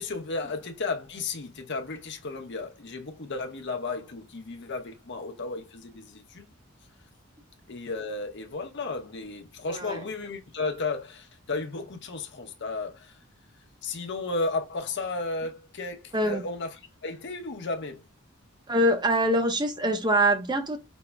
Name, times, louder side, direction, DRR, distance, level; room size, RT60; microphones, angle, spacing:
voice 1, 0.0-6.5 7.7-13.1 13.8-16.7 17.0-18.0, left 3 dB, 55° left, 0.8 m, -34 dB
voice 2, 9.7-10.0 16.1-16.4 18.7-20.8, right 1 dB, 20° right, 0.6 m, -24 dB
5.2 x 2.0 x 2.2 m
head